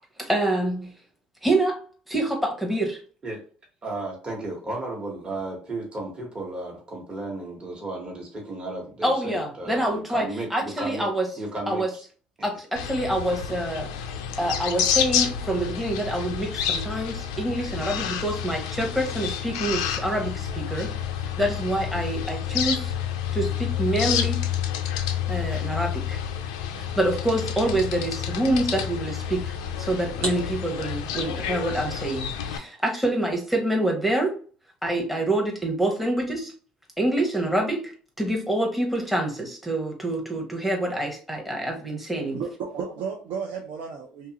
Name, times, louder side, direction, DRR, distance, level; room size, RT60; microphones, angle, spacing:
voice 1, 0.2-0.9 1.4-1.8 2.1-3.0 9.0-11.3 11.7-11.9 12.4-13.9 14.4-20.9 21.2-22.9 23.3-24.4 25.3-26.2 26.8-29.5 29.8-34.3 34.8-36.5 37.0-37.9 38.2-42.4, right 1 dB, ahead, 0.8 m, -26 dB
voice 2, 3.8-11.1 11.4-12.0, right 2 dB, 35° right, 1.1 m, -34 dB
sound 1, 12.8-32.6, left 9 dB, 85° left, 0.4 m, -29 dB
sound 2, 27.2-32.6, right 1 dB, 90° right, 1.2 m, -42 dB
voice 3, 42.3-44.3, right 6 dB, 70° right, 0.5 m, -33 dB
2.8 x 2.3 x 2.9 m
supercardioid pair, 75°, 3 cm